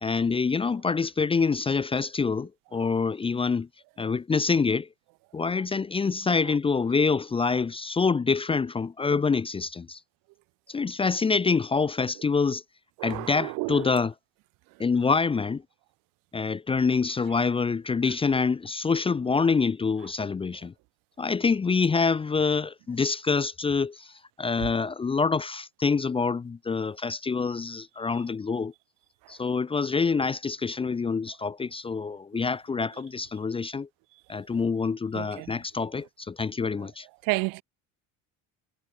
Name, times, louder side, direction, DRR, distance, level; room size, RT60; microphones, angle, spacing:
voice 1, 0.0-3.7 4.0-4.9 5.3-10.0 10.7-12.6 13.0-14.1 14.8-15.6 16.3-20.7 21.2-24.1 24.4-28.7 29.3-33.9 34.3-37.1, left 4 dB, 15° left, 0.7 m, -26 dB
voice 2, 13.0-13.9 35.1-35.5 37.2-37.6, right 27 dB, 75° right, 2.4 m, -30 dB
cardioid pair, 125°, 33 cm